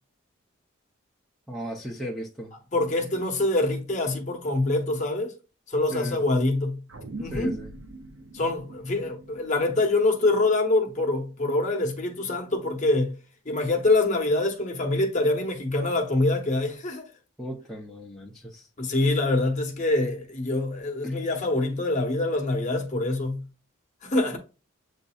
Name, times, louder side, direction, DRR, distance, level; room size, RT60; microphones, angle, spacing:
voice 1, 1.5-2.5 5.9-6.2 7.3-7.7 17.4-18.7 21.0-21.2, equal, ahead, 0.5 m, -36 dB
voice 2, 2.7-5.3 5.7-6.8 7.2-7.5 8.3-13.1 13.4-17.0 18.8-23.4 24.0-24.4, left 2 dB, 35° left, 0.9 m, -25 dB
sound 1, 6.9-11.6, right 2 dB, 70° right, 0.6 m, -42 dB
7.7 x 2.6 x 2.3 m
head